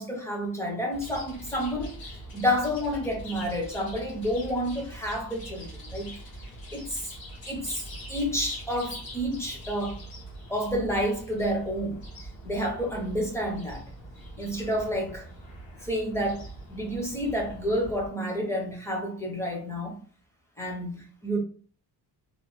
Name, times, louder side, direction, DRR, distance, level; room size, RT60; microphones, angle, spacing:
voice 1, 0.0-6.2 6.7-7.1 7.5-10.0 10.5-13.8 14.4-15.3 15.8-20.0 20.6-21.4, equal, 5° left, 0.5 m, -30 dB
Chirp tweet, 0.9-18.1, right 1 dB, 65° left, 1.1 m, -43 dB
3.0 x 2.0 x 2.9 m
cardioid pair, 170°, 39 cm